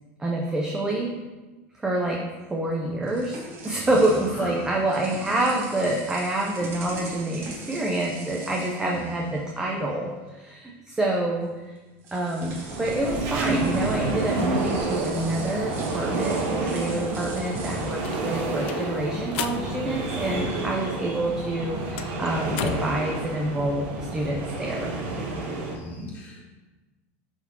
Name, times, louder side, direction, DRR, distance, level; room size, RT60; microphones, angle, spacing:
voice 1, 0.2-1.2 1.8-2.2 2.5-11.7 12.1-24.9, right 1 dB, 10° right, -1 dB, 0.6 m, -27 dB
sound 1, 2.6-9.8 10.1-10.3 11.4-11.5 12.0-19.1, right 3 dB, 40° right, 1.3 m, -41 dB
voice 2, 3.7-4.7 8.9-9.2 20.3-20.7 25.7-26.5, right 1 dB, 35° left, -3 dB, 2.1 m, -37 dB
sound 2, 12.4-25.8, right 2 dB, 55° right, 1.5 m, -29 dB
sound 3, 17.1-20.8 21.1-23.0, left 9 dB, 70° left, 0.5 m, -37 dB
11.0 x 4.1 x 2.9 m, 1.2 s
supercardioid pair, 160°, 6 cm